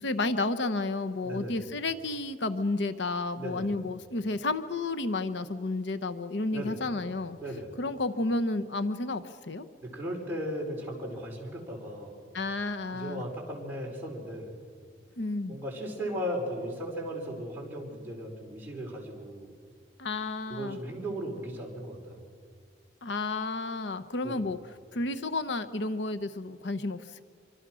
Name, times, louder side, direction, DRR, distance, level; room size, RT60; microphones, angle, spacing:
voice 1, 0.0-7.4 7.8-9.7 12.3-13.2 15.2-15.6 20.0-20.8 23.0-27.2, left 2 dB, 75° left, 11 dB, 0.9 m, -31 dB
voice 2, 1.2-1.6 3.4-3.7 6.5-6.8 7.4-7.7 9.8-12.2 12.9-14.5 15.5-19.5 20.5-22.2 24.2-24.5, equal, 10° right, -3 dB, 4.8 m, -36 dB
25.5 x 24.5 x 6.3 m, 2.1 s
head